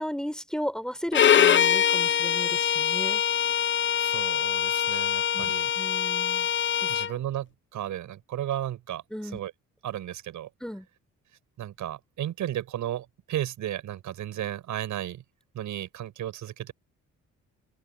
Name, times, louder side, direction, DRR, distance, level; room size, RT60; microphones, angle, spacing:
voice 1, 0.0-3.2 5.3-6.5 6.8-6.9 9.1-9.4 10.6-10.9, equal, ahead, 4.8 m, -35 dB
Bowed string instrument, 1.1-7.1, left 9 dB, 40° left, 0.6 m, -23 dB
voice 2, 4.0-5.7 6.9-9.0 9.3-9.5 9.8-10.5 11.6-15.2 15.5-16.7, right 12 dB, 75° right, 6.7 m, -34 dB
open air
cardioid pair, 90°, 30 cm